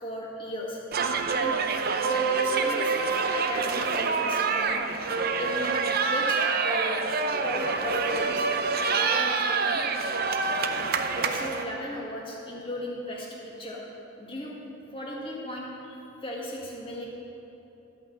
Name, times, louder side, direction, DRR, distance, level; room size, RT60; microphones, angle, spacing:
voice 1, 0.0-0.8 1.4-1.6 2.0-3.0 3.3-4.8 5.4-5.8 6.0-7.0 7.3-8.5 8.8-9.8 11.1-13.8 14.2-14.5 14.9-17.1, left 1 dB, 25° left, -3 dB, 1.7 m, -35 dB
sound 1, 0.9-11.6, right 4 dB, 45° right, 0.6 m, -26 dB
12.5 x 5.8 x 7.8 m, 3.0 s
head